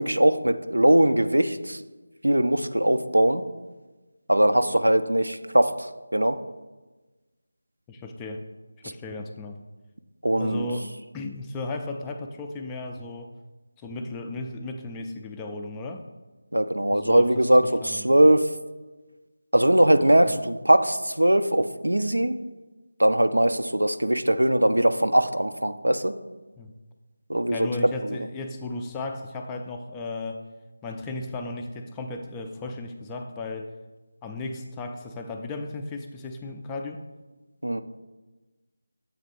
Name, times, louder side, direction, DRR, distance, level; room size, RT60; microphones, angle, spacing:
voice 1, 0.0-1.8 2.2-3.4 4.3-6.4 10.2-10.7 16.5-18.5 19.5-22.3 23.0-26.1 27.3-27.7 28.0-28.2 37.6-37.8, right 1 dB, 85° right, 10 dB, 0.4 m, -21 dB
voice 2, 7.9-8.4 8.8-9.6 10.3-10.9 11.1-13.3 13.8-16.0 16.9-18.1 20.0-20.4 26.6-26.7 27.5-30.4 30.8-33.7 34.2-37.0, left 2 dB, 10° left, 4 dB, 0.3 m, -35 dB
7.3 x 2.9 x 5.1 m, 1.2 s
figure-of-eight pair, 165°, 0 cm